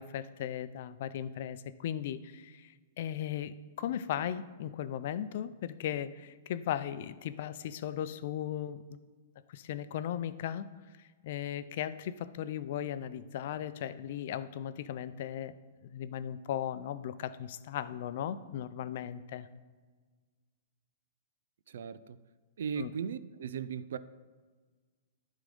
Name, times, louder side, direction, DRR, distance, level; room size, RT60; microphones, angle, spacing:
voice 1, 0.0-8.8 9.5-10.7 11.0-15.5 15.8-19.5 22.8-22.9, left 10 dB, 60° left, 0.5 m, -37 dB
voice 2, 21.7-22.2 22.6-24.0, right 7 dB, 70° right, 0.4 m, -37 dB
11.0 x 3.7 x 5.3 m
hypercardioid pair, 125°, 0 cm